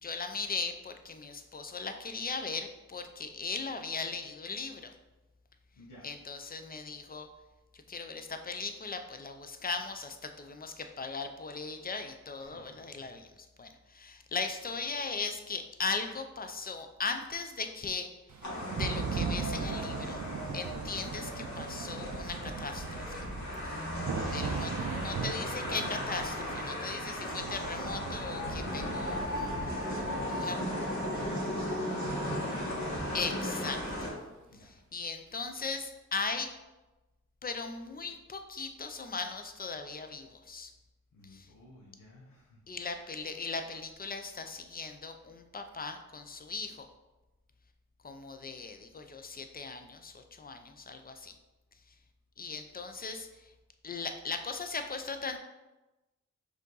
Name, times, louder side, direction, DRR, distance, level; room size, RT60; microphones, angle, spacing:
voice 1, 0.0-4.9 6.0-7.3 7.9-13.3 13.6-18.1 18.8-20.2 20.5-23.2 24.3-29.6 30.3-30.6 33.1-33.8 34.6-36.5 37.4-40.7 41.3-41.5 42.7-46.9 48.0-51.3 52.4-53.3 53.8-55.4, left 4 dB, 30° left, 7 dB, 0.5 m, -38 dB
voice 2, 5.7-6.1 12.4-12.9 30.1-33.2 34.5-34.7 41.1-42.6, left 2 dB, 80° left, -4 dB, 0.9 m, -52 dB
Thunder / Rain, 18.3-34.1, right 5 dB, 70° right, 0.5 m, -40 dB
sound 1, 18.4-34.1, left 1 dB, 65° left, 1.5 m, -36 dB
5.0 x 2.7 x 3.9 m, 1.1 s
cardioid pair, 55°, 31 cm